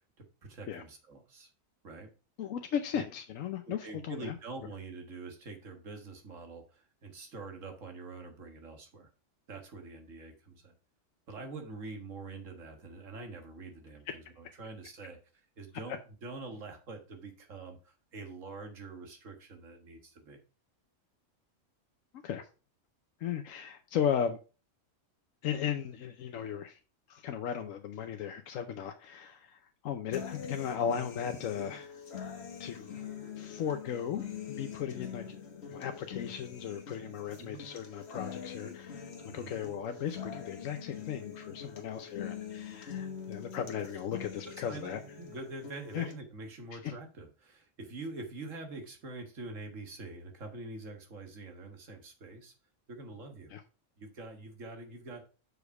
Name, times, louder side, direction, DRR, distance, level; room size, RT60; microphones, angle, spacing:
voice 1, 0.4-1.5 1.8-2.1 2.9-3.0 3.7-9.1 9.5-10.7 11.3-15.2 15.6-20.4 37.4-37.6 39.3-39.6 43.7-43.9 44.1-44.3 44.6-52.5 52.9-53.5 54.0-55.3, right 3 dB, 80° right, 1.9 m, -45 dB
voice 2, 2.4-4.3 14.1-14.2 22.2-22.5 23.2-24.4 25.4-26.8 27.1-32.0 32.6-32.9 33.4-35.2 35.7-45.0 45.9-46.1 46.8-46.9 53.5-53.6, left 8 dB, 85° left, 1.1 m, -36 dB
sound 1, 30.1-46.1, left 7 dB, 55° left, 1.4 m, -44 dB
6.4 x 5.1 x 4.7 m
omnidirectional pair, 1.3 m